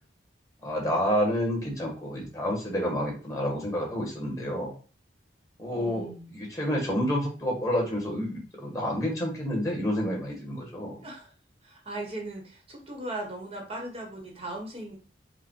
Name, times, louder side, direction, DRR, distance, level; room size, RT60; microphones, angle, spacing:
voice 1, 0.6-4.7 5.6-11.1, equal, 15° left, -3 dB, 1.3 m, -29 dB
voice 2, 5.7-6.3 11.0-11.3 11.6-15.0, right 1 dB, 30° right, 0 dB, 0.9 m, -38 dB
5.0 x 2.1 x 4.5 m, 0.38 s
head